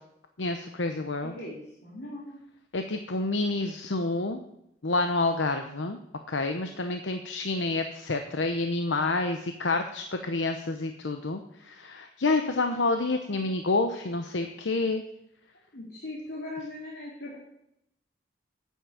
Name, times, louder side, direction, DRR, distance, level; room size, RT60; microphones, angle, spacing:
voice 1, 0.4-1.3 2.7-4.4 4.8-6.0 6.3-15.0, left 3 dB, 90° left, 6 dB, 0.9 m, -28 dB
voice 2, 1.2-2.4 15.7-17.4, left 1 dB, 70° left, -4 dB, 2.9 m, -39 dB
9.2 x 7.5 x 8.4 m, 0.80 s
head